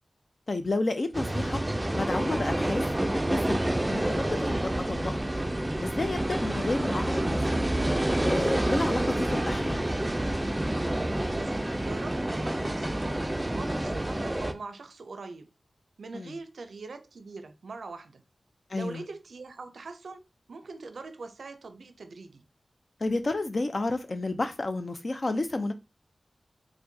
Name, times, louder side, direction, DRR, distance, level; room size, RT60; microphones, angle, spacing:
voice 1, 0.5-1.6 1.9-2.8 3.3-3.6 3.9-4.6 4.9-5.3 5.8-7.7 8.2-9.8 16.1-16.3 18.7-19.0 23.0-25.7, left 2 dB, 55° left, 0.5 m, -31 dB
sound 1, 1.1-14.5, right 1 dB, 20° right, 0.4 m, -28 dB
voice 2, 11.3-15.5 16.0-18.2 18.7-22.4, right 3 dB, 85° right, 0.4 m, -42 dB
4.4 x 2.1 x 2.7 m
wide cardioid pair, 55°, 0 cm